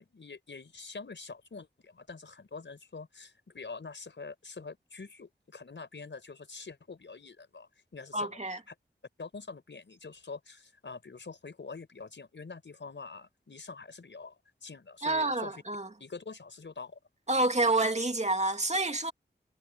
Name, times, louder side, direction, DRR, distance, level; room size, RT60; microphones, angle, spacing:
voice 1, 0.0-8.4 8.7-8.8 9.2-14.4 14.6-15.6 16.0-17.0, left 4 dB, 85° left, 5.4 m, -45 dB
voice 2, 8.1-8.6 15.0-15.9 17.3-19.1, right 2 dB, 35° right, 2.5 m, -28 dB
wide cardioid pair, 50°, 19 cm